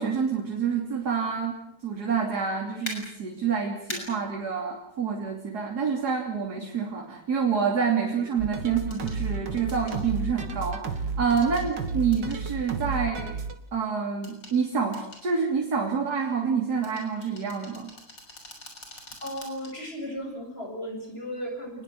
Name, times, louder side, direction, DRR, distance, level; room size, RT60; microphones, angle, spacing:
voice 1, 0.0-1.6 1.8-13.4 13.7-17.9, right 6 dB, 60° right, 1 dB, 3.6 m, -27 dB
sound 1, 2.9-3.0 3.9-4.0 6.0-6.1 8.9-9.2 9.7-10.0 11.4-11.7 12.1-12.4 14.2-14.6 14.9-15.2 16.8-19.7 20.2-20.3, left 1 dB, 75° left, 7.1 m, -41 dB
sound 2, 8.4-13.6, right 4 dB, 80° right, 2.5 m, -32 dB
voice 2, 19.2-21.8, equal, 30° left, 2 dB, 7.8 m, -35 dB
28.0 x 21.0 x 7.8 m, 0.69 s
omnidirectional pair, 1.9 m